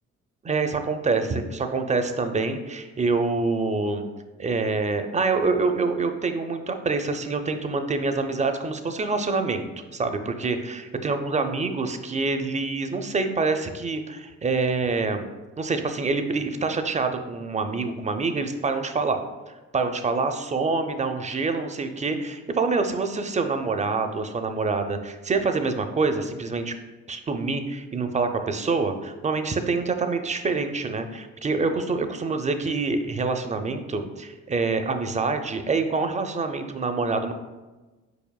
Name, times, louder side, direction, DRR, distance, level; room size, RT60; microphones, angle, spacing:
voice 1, 0.4-4.0 4.4-9.7 9.9-15.2 15.6-19.2 19.5-26.7 27.1-37.3, right 4 dB, 25° right, 7 dB, 0.4 m, -26 dB
4.9 x 4.8 x 2.3 m, 1.2 s
cardioid pair, 80°, 29 cm